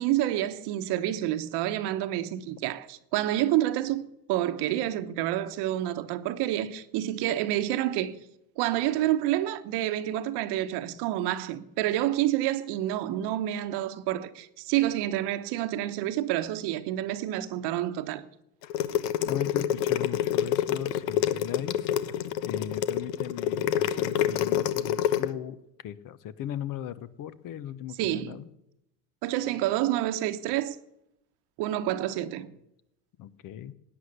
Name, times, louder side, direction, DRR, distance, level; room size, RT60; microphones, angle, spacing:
voice 1, 0.0-8.2 8.6-18.2 28.0-28.4 29.2-30.8 31.6-32.6, right 13 dB, 55° right, 1.2 m, -28 dB
sound 1, 18.6-25.3, left 11 dB, 85° left, 1.2 m, -27 dB
voice 2, 19.2-21.9 22.4-28.5 33.2-33.7, left 11 dB, 45° left, 0.9 m, -38 dB
17.5 x 9.8 x 6.7 m
supercardioid pair, 115°, 48 cm